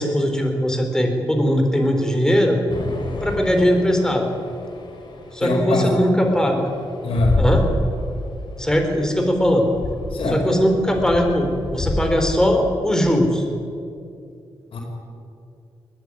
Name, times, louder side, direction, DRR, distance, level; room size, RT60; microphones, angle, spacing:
voice 1, 0.0-2.6 3.2-4.3 5.3-6.7 7.4-7.6 8.6-9.7 10.3-13.4, equal, 5° left, 3 dB, 3.8 m, -19 dB
sound 1, 2.7-12.5, left 2 dB, 55° left, 3.9 m, -29 dB
voice 2, 5.4-6.0 7.0-7.4 10.1-10.4 14.7-14.8, left 1 dB, 80° left, -1 dB, 4.9 m, -22 dB
20.5 x 13.5 x 9.7 m, 2.5 s
cardioid pair, 95°, 9 cm